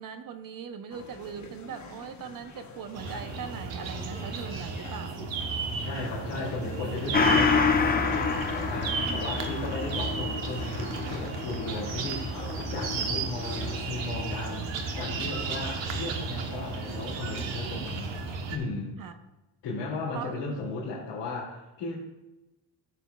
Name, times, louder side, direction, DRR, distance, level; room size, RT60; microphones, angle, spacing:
voice 1, 0.0-5.3 8.9-9.3 19.0-19.2 20.1-20.4, right 7 dB, 50° right, 9 dB, 0.7 m, -40 dB
sound 1, 0.9-18.3, left 4 dB, 40° left, 1.1 m, -45 dB
sound 2, 2.9-18.6, right 4 dB, 85° right, 1.1 m, -34 dB
voice 2, 5.8-18.1 18.5-19.0 19.6-21.9, left 3 dB, 80° left, -8 dB, 2.5 m, -36 dB
Gong, 7.1-16.1 16.4-16.5, left 5 dB, 20° left, 0.5 m, -30 dB
14.0 x 6.7 x 2.3 m, 1.0 s
cardioid pair, 150°, 44 cm